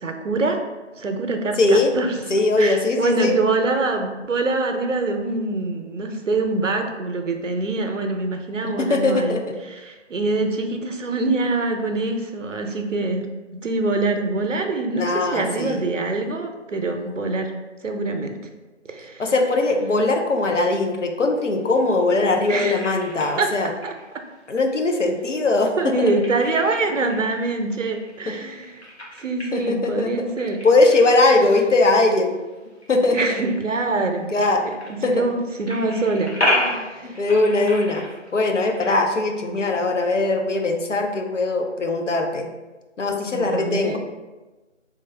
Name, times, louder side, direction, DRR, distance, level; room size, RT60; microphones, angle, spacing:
voice 1, 0.0-0.6 1.0-2.2 2.6-9.4 9.7-13.3 13.6-17.5 17.8-18.4 18.9-19.3 22.5-22.8 23.4-23.5 23.8-23.9 25.8-28.8 29.2-30.6 31.3-31.4 33.1-34.3 34.6-34.8 35.1-37.2 43.3-44.0, right 3 dB, 80° right, 5 dB, 0.6 m, -24 dB
voice 2, 1.6-1.9 2.3-3.4 8.6-9.6 14.9-15.8 19.2-23.7 24.5-26.1 28.3-28.4 29.5-30.1 30.6-32.3 32.9-33.2 34.3-34.6 35.0-35.3 37.0-38.0 38.3-42.5 43.0-44.0, left 2 dB, 75° left, 3 dB, 0.6 m, -20 dB
sound 1, 21.4-39.0, left 1 dB, 60° left, 1.0 m, -33 dB
3.6 x 2.5 x 3.1 m, 1.2 s
figure-of-eight pair, 175°, 37 cm